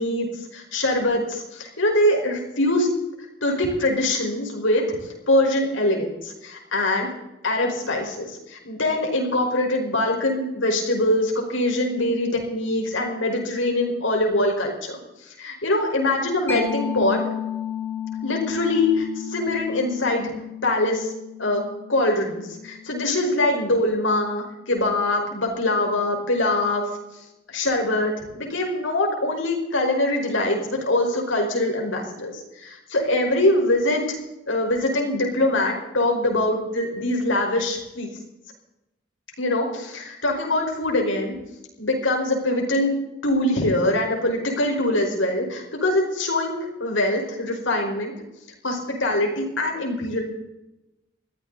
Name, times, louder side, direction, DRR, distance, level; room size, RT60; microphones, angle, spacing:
voice 1, 0.0-2.9 3.4-5.0 5.3-7.1 7.4-17.2 18.2-20.3 20.6-21.1 21.4-21.6 21.9-26.8 27.5-34.2 34.5-38.1 39.4-41.4 41.8-42.9 43.2-48.1 48.6-50.2, left 1 dB, 85° left, 1 dB, 5.1 m, -23 dB
Mallet percussion, 16.5-23.8, left 8 dB, 10° left, 3.7 m, -33 dB
21.5 x 15.0 x 4.2 m, 0.93 s
head